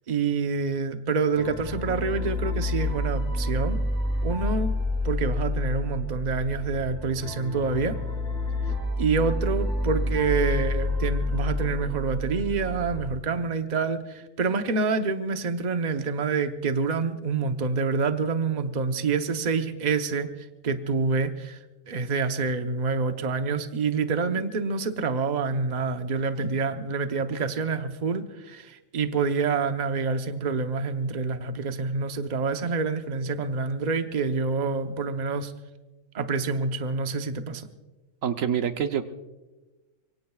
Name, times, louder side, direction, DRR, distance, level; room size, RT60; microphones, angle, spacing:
voice 1, 0.1-3.9 4.2-4.7 5.0-8.0 9.0-21.6 21.9-35.5 36.1-37.7, right 4 dB, 40° right, 7 dB, 0.9 m, -27 dB
sound 1, 1.4-13.1, left 1 dB, 5° left, 4.6 m, -29 dB
voice 2, 38.2-39.0, right 8 dB, 80° right, 8 dB, 1.2 m, -26 dB
25.5 x 23.0 x 2.3 m, 1.2 s
omnidirectional pair, 1.4 m